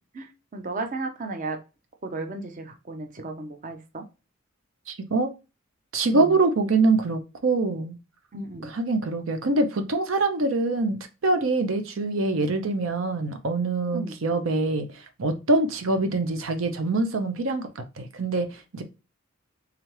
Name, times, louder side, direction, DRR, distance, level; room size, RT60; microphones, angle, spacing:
voice 1, 0.1-1.6 2.0-4.0 6.1-6.3 8.3-8.7 13.9-14.1, right 3 dB, 40° right, 0.6 m, -34 dB
voice 2, 4.9-5.3 5.9-8.0 8.6-14.9 15.2-18.8, right 3 dB, 75° right, 0.6 m, -24 dB
3.6 x 3.3 x 3.0 m
head